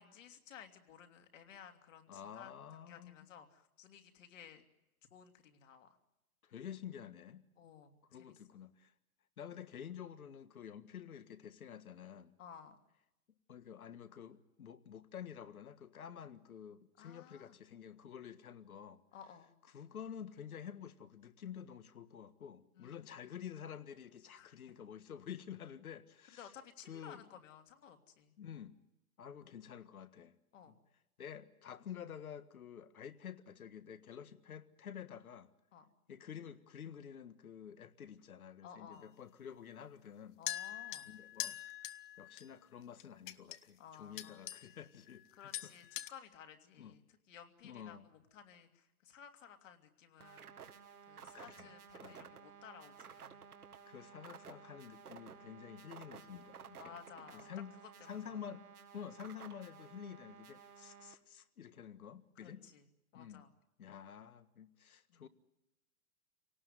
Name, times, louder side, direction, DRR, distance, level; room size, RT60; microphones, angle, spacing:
voice 1, 0.0-4.6 5.1-6.0 7.6-8.4 12.4-12.8 17.0-17.6 19.1-19.5 22.7-23.2 24.3-24.6 26.4-28.3 30.5-30.8 35.7-35.9 38.6-39.2 40.4-41.1 43.8-44.5 45.3-47.0 47.3-50.8 51.1-53.4 56.8-57.5 57.8-58.1 62.4-62.8 63.1-63.5 65.1-65.3, left 8 dB, 60° left, 3.0 m, -56 dB
voice 2, 2.1-3.3 6.4-7.4 8.1-8.9 9.4-12.4 13.5-19.0 19.7-26.5 26.9-27.2 28.4-28.7 29.2-30.4 30.7-30.8 31.2-35.5 36.1-40.4 41.1-41.6 42.2-45.7 46.8-46.9 47.6-48.1 51.3-51.7 52.0-52.3 53.9-56.9 57.3-57.7 58.0-58.7 58.9-62.7 63.1-63.4 63.8-65.3, left 8 dB, 75° left, 1.7 m, -50 dB
sound 1, 40.5-42.5 43.0-43.6 44.2-44.8 45.1-45.3 45.5-46.1, left 14 dB, 35° left, 1.0 m, -43 dB
sound 2, 50.2-61.1, right 7 dB, 90° right, 2.0 m, -55 dB
27.0 x 18.5 x 9.5 m
hypercardioid pair, 135°, 43 cm